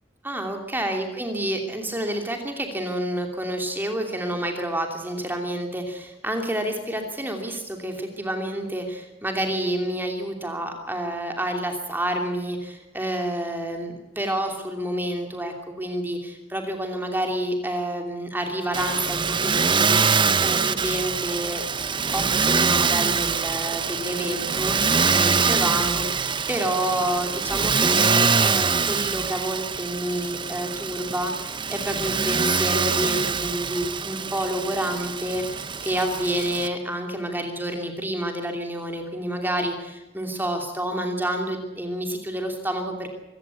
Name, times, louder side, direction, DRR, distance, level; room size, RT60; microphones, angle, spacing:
voice 1, 0.2-21.6 22.1-43.1, right 1 dB, 10° right, 4 dB, 2.8 m, -29 dB
Motor vehicle (road), 18.7-36.7, right 5 dB, 25° right, 0.8 m, -24 dB
24.5 x 16.0 x 8.2 m, 1.1 s
head